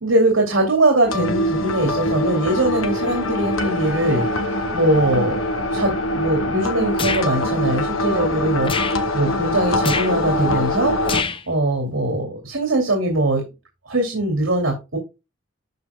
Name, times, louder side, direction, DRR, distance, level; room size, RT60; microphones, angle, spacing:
voice 1, 0.0-5.4 5.7-13.4 13.8-15.0, right 1 dB, 85° right, 1 dB, 2.6 m, -21 dB
sound 1, 1.0-11.2, left 1 dB, 85° left, 1.3 m, -23 dB
sound 2, 7.0-7.3 8.6-9.0 9.8-10.1 11.0-11.4, left 4 dB, 25° left, 0.7 m, -25 dB
12.5 x 5.5 x 2.3 m, 0.26 s
head